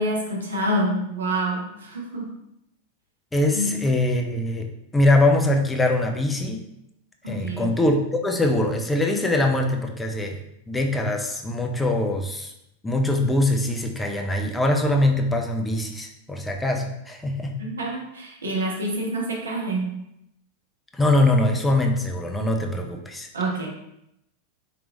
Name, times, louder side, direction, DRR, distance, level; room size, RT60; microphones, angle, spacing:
voice 1, 0.0-2.4 3.5-3.8 7.2-7.7 17.6-19.9 23.3-23.7, right 1 dB, 70° right, -1 dB, 0.7 m, -27 dB
voice 2, 3.3-4.7 4.9-6.6 7.3-10.4 10.7-12.5 12.8-17.6 20.9-23.3, left 1 dB, 10° left, 3 dB, 0.4 m, -22 dB
3.3 x 3.0 x 2.5 m, 0.82 s
figure-of-eight pair, 90°, 0 cm